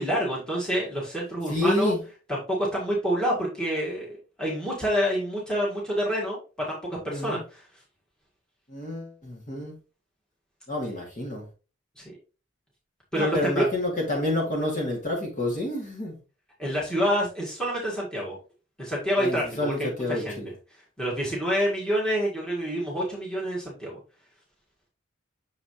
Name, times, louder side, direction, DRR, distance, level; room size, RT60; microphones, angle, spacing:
voice 1, 0.0-1.9 2.3-6.4 6.7-7.6 12.0-12.1 13.1-13.7 16.6-18.4 18.8-20.4 21.0-24.0, equal, 5° left, 1.9 m, -27 dB
voice 2, 1.5-2.0 7.1-7.4 8.7-9.7 10.7-11.5 13.1-16.2 19.2-20.5, left 1 dB, 40° left, 2.2 m, -28 dB
6.6 x 4.8 x 3.1 m
head